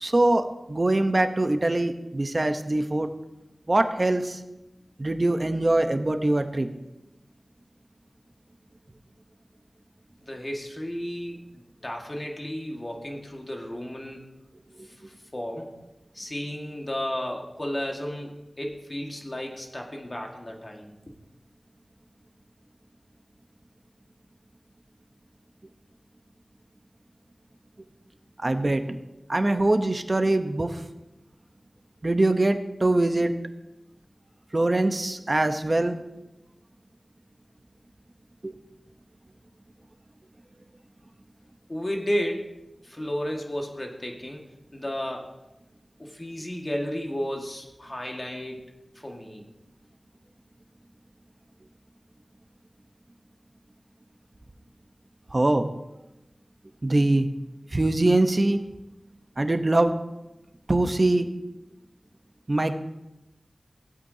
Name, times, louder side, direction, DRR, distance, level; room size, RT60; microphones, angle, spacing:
voice 1, 0.0-3.1 3.7-4.4 5.0-6.7 28.4-29.0 29.3-30.8 32.0-33.3 34.5-36.0 38.4-38.6 55.3-55.7 56.8-57.3 57.7-58.6 59.4-59.9 60.7-61.3 62.5-62.7, right 2 dB, 40° right, 7 dB, 0.9 m, -23 dB
voice 2, 10.2-14.2 14.8-15.7 16.1-20.9 41.7-42.4 42.8-44.4 44.7-45.3 46.0-48.7 49.0-49.4, equal, 35° left, 1 dB, 1.7 m, -33 dB
16.5 x 8.3 x 2.8 m, 0.96 s
wide cardioid pair, 55°, 0 cm